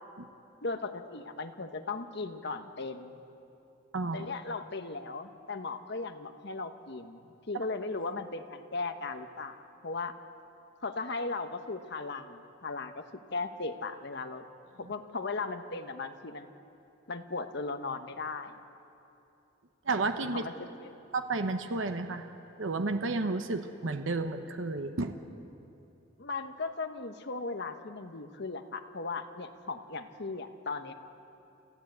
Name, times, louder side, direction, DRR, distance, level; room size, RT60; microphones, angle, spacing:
voice 1, 0.6-3.2 4.1-9.5 9.8-10.1 10.8-13.0 13.3-14.4 14.8-16.5 17.1-18.6 20.3-20.5 20.8-20.9 26.2-30.9, left 3 dB, 60° left, 7 dB, 1.1 m, -37 dB
voice 2, 3.9-4.3 7.5-7.6 19.9-20.5 21.1-22.3 22.6-25.1, right 3 dB, 75° right, 7 dB, 1.0 m, -31 dB
28.5 x 14.0 x 8.0 m, 2.9 s
head